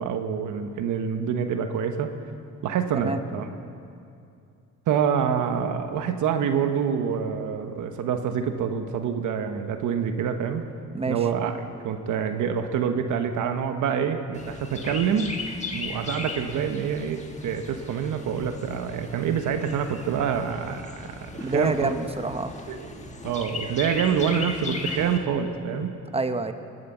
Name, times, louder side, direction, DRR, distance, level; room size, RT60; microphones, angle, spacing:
voice 1, 0.0-2.1 2.6-3.5 4.9-10.6 11.1-15.3 15.7-21.9 22.7-26.0, right 7 dB, 80° right, 7 dB, 1.1 m, -26 dB
Chirp tweet, 14.3-25.2, left 3 dB, 25° left, 1.7 m, -37 dB
voice 2, 21.4-22.5 26.1-26.5, right 3 dB, 20° right, 9 dB, 1.0 m, -27 dB
20.5 x 9.5 x 7.3 m, 2.5 s
cardioid pair, 90°, 30 cm